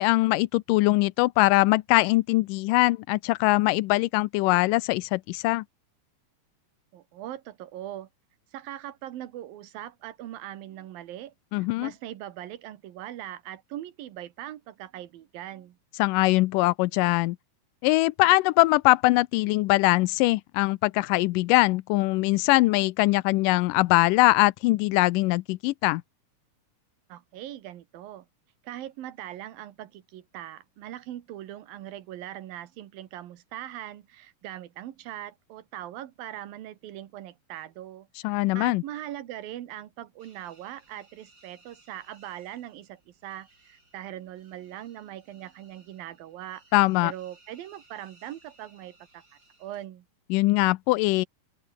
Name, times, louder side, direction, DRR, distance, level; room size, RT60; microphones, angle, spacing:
voice 1, 0.0-5.6 11.5-11.9 16.0-17.4 17.8-26.0 38.2-38.8 46.7-47.1 50.3-51.3, left 20 dB, 80° left, 2.1 m, -22 dB
voice 2, 6.9-8.1 8.5-15.8 27.1-28.3 28.6-46.6 47.0-49.2 49.6-50.1, right 12 dB, 85° right, 3.2 m, -41 dB
sound 1, 40.2-49.9, right 2 dB, 25° right, 7.9 m, -61 dB
open air
omnidirectional pair, 4.0 m